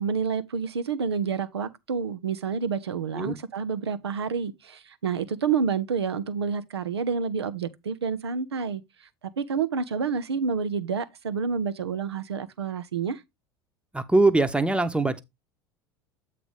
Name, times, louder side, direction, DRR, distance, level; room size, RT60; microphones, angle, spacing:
voice 1, 0.0-9.1 9.4-13.2, right 6 dB, 85° right, 0.7 m, -29 dB
voice 2, 13.9-15.2, right 2 dB, 10° right, 0.9 m, -22 dB
8.1 x 3.3 x 5.2 m
hypercardioid pair, 80°, 13 cm